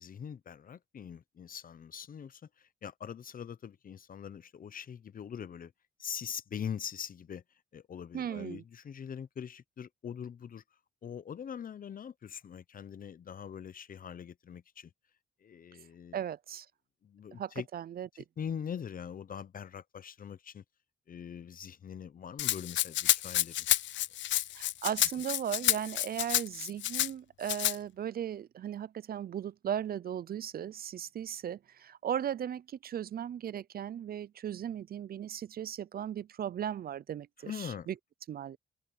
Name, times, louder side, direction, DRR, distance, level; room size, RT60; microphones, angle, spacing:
voice 1, 0.0-5.7 6.0-7.4 7.7-10.6 11.0-14.9 15.4-16.2 17.0-17.7 18.1-20.6 21.1-23.7 25.1-25.2 37.4-37.9, left 8 dB, 45° left, 0.9 m, -42 dB
voice 2, 8.1-8.6 16.1-16.7 17.4-18.1 24.5-37.9 38.3-38.6, right 9 dB, 50° right, 0.6 m, -37 dB
Rattle (instrument), 22.4-27.1 27.5-27.8, left 14 dB, 70° left, 0.5 m, -29 dB
cardioid pair, 90°, 20 cm